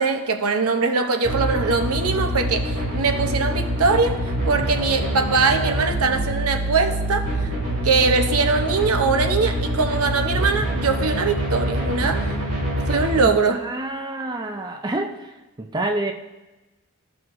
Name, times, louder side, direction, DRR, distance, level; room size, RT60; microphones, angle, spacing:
voice 1, 0.0-4.2 4.4-7.5 7.8-12.4 12.9-13.6, right 4 dB, 90° right, 6 dB, 0.8 m, -22 dB
sound 1, 1.2-13.2, equal, 55° right, 2.5 m, -25 dB
voice 2, 13.5-16.1, right 2 dB, 20° right, 4 dB, 0.4 m, -28 dB
14.5 x 5.8 x 2.6 m, 1.1 s
head